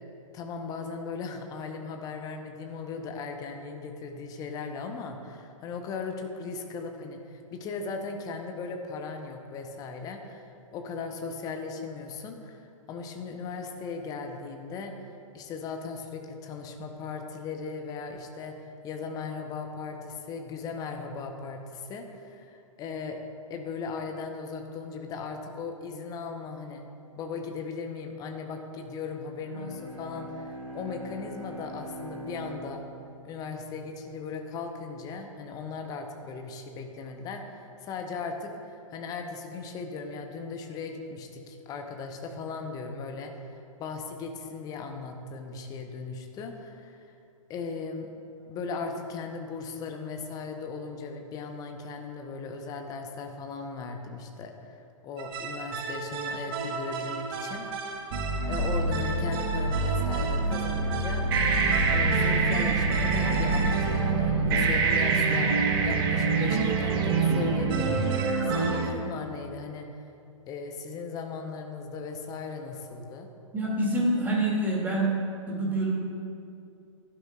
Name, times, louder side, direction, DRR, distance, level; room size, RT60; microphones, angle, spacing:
voice 1, 0.3-14.9 15.3-23.2 23.5-26.8 27.2-32.8 33.2-47.1 47.5-48.1 48.5-58.0 58.5-61.3 61.9-65.5 65.8-69.9 70.5-73.3, left 4 dB, 20° left, 4 dB, 0.9 m, -37 dB
Bowed string instrument, 29.3-34.7, right 1 dB, 85° right, 1.4 m, -42 dB
sound 1, 55.2-68.9, right 4 dB, 45° right, 1.4 m, -26 dB
voice 2, 73.5-75.1 75.5-75.9, right 1 dB, 10° right, -3 dB, 2.5 m, -26 dB
15.5 x 11.5 x 2.4 m, 2.6 s
figure-of-eight pair, 115°, 17 cm